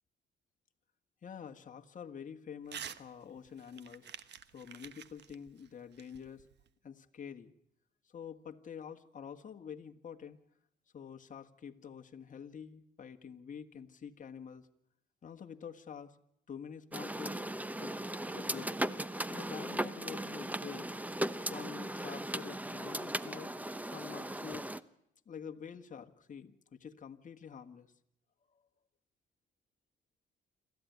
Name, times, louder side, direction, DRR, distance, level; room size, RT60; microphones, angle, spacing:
voice 1, 1.2-4.1 4.5-6.4 6.8-7.5 8.0-10.4 10.9-14.7 15.2-16.2 16.5-17.4 17.8-17.9 18.3-18.8 19.3-20.9 21.3-23.6 23.9-24.7 25.2-27.9 28.5-28.6, left 7 dB, 40° left, 5 dB, 1.5 m, -47 dB
Crumpling crinkling / Tearing, 2.7-3.0 3.4-6.7, right 8 dB, 60° right, 1.1 m, -48 dB
sound 1, 16.9-24.8, right 1 dB, 10° right, 0.8 m, -38 dB
27.0 x 14.0 x 9.4 m, 0.80 s
cardioid pair, 90°, 20 cm